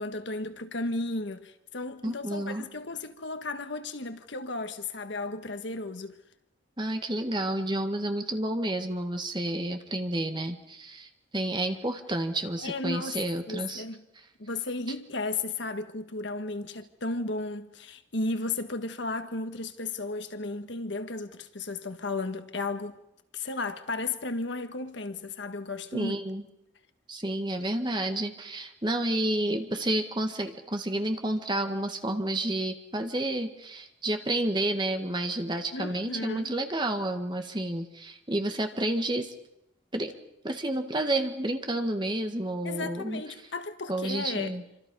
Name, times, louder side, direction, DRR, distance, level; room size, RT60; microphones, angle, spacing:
voice 1, 0.0-6.2 12.6-13.2 13.5-14.0 14.4-23.0 23.3-26.1 35.7-36.5 42.6-44.6, left 3 dB, 65° left, 1.5 m, -34 dB
voice 2, 2.0-2.6 6.8-13.8 25.9-26.4 27.1-39.3 39.9-40.1 40.4-43.2 43.9-44.6, right 1 dB, 25° right, 1.8 m, -30 dB
27.5 x 26.0 x 5.5 m
head